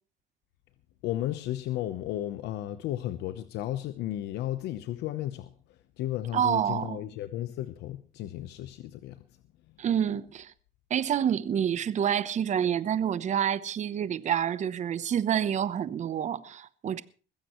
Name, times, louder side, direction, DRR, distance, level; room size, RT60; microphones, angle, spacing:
voice 1, 1.0-9.2, left 13 dB, 85° left, 0.9 m, -34 dB
voice 2, 6.3-7.0 9.8-10.5 10.9-17.0, right 9 dB, 45° right, 0.9 m, -28 dB
21.0 x 15.5 x 3.1 m
cardioid pair, 110°, 17 cm